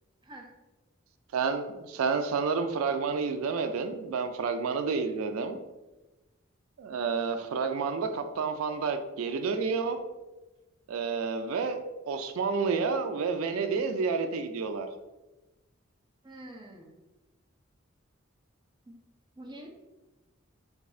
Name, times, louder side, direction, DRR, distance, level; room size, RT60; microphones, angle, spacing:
voice 1, 0.2-0.5 16.2-16.9 18.8-18.9 19.4-19.7, right 1 dB, 20° right, 0 dB, 0.5 m, -46 dB
voice 2, 1.3-5.6 6.8-10.0 10.9-11.8 12.1-14.9, right 5 dB, 90° right, 8 dB, 0.3 m, -30 dB
3.4 x 2.3 x 4.2 m, 1.1 s
head